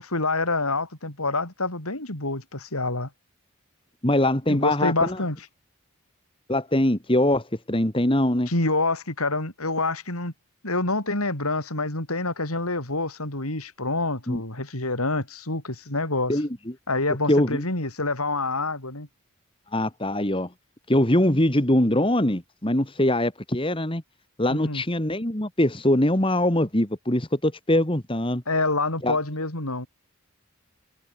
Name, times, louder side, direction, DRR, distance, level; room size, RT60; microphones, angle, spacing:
voice 1, 0.0-3.1 4.5-5.4 8.5-10.3 10.6-16.4 16.9-19.1 24.5-24.8 28.5-29.9, left 2 dB, 85° left, 5.7 m, -27 dB
voice 2, 4.0-5.2 6.5-8.5 14.3-14.4 16.3-16.5 17.3-17.6 19.7-20.5 20.9-24.0 24.4-28.4 29.0-29.2, left 1 dB, 25° left, 2.0 m, -22 dB
head